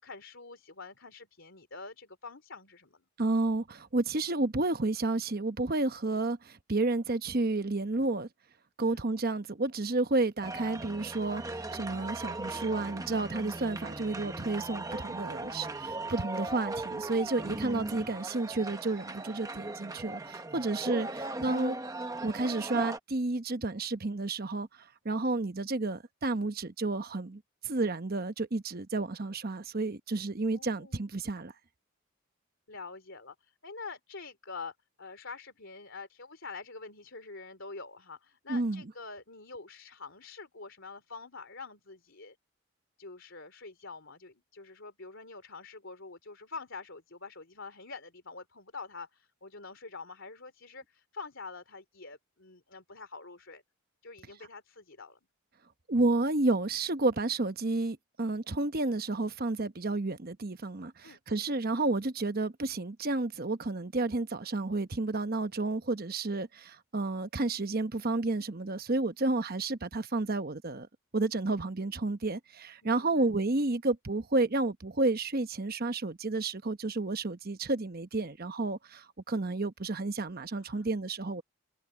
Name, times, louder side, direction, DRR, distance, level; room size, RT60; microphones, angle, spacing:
voice 1, 0.0-3.0 8.8-9.0 17.4-17.6 20.9-21.4 30.5-31.1 32.7-42.4 43.0-53.6 54.0-55.2 61.0-61.2 72.8-73.3 80.6-80.9, left 4 dB, 55° left, 3.6 m, -46 dB
voice 2, 3.2-8.3 8.8-21.8 22.2-24.7 25.0-31.5 38.5-38.8 55.9-70.9 71.1-81.4, right 2 dB, 40° right, 1.0 m, -31 dB
sound 1, 10.4-23.0, right 2 dB, 15° right, 0.9 m, -38 dB
head